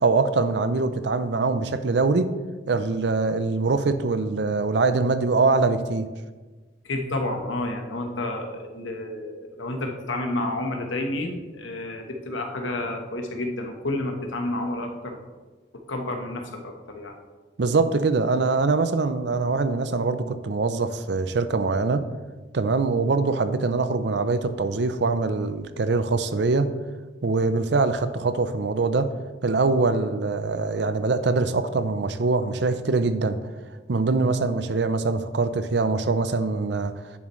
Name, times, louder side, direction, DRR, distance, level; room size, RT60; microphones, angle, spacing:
voice 1, 0.0-2.3 2.7-6.1 17.6-22.0 22.5-26.7 27.2-29.1 29.4-33.4 33.9-36.9, right 3 dB, 65° right, 11 dB, 0.5 m, -23 dB
voice 2, 6.8-15.2 15.7-17.1, left 1 dB, 90° left, 4 dB, 1.2 m, -30 dB
10.5 x 7.2 x 3.1 m, 1.3 s
head